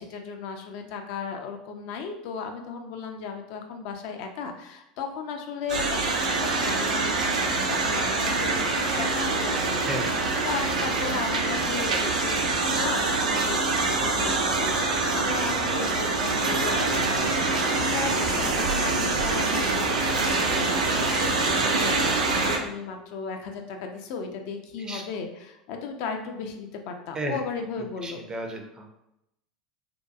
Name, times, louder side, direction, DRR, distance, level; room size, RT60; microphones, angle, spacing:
voice 1, 0.0-6.0 6.4-12.3 12.6-28.2, left 5 dB, 55° left, 4 dB, 0.4 m, -36 dB
sound 1, 5.7-22.6, right 3 dB, 75° right, 0.4 m, -25 dB
voice 2, 9.9-10.2 10.6-10.7 11.0-11.1 24.8-25.0 27.1-27.4 28.0-28.9, right 2 dB, 20° right, 3 dB, 0.5 m, -34 dB
2.7 x 2.2 x 2.3 m, 0.85 s
figure-of-eight pair, 80°, 4 cm